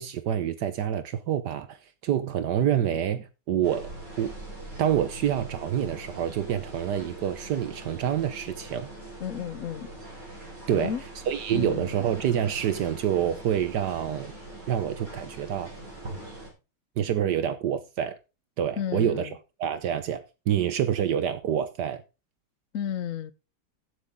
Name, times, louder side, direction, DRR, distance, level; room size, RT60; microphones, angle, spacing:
voice 1, 0.0-1.8 2.0-3.9 4.2-4.4 4.8-8.9 10.7-10.9 11.3-14.3 14.7-15.7 17.0-18.2 18.6-19.3 19.6-22.0, right 9 dB, 70° right, 1.4 m, -27 dB
sound 1, 3.6-16.5, right 1 dB, 50° right, 6.6 m, -42 dB
voice 2, 9.2-9.9 10.7-11.0 11.5-12.0 18.8-19.3 22.7-23.3, left 9 dB, 55° left, 1.1 m, -32 dB
13.5 x 7.9 x 3.7 m
omnidirectional pair, 1.9 m